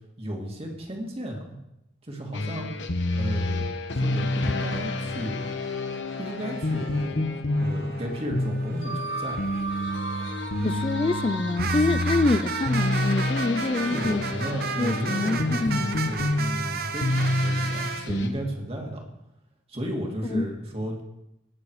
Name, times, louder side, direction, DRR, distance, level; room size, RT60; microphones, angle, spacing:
voice 1, 0.2-1.6 2.0-2.7 3.1-3.6 3.9-5.4 6.2-7.2 7.5-9.4 13.9-19.0 19.7-21.0, equal, 35° right, 0 dB, 2.6 m, -33 dB
sound 1, 2.3-18.3, left 1 dB, 75° left, 1.2 m, -28 dB
sound 2, 4.2-7.1 7.5-18.0, right 6 dB, 55° right, 0.9 m, -35 dB
voice 2, 10.6-14.2 14.8-16.0 20.3-20.5, left 2 dB, 30° left, 11 dB, 0.4 m, -26 dB
19.0 x 7.5 x 4.9 m, 0.86 s
head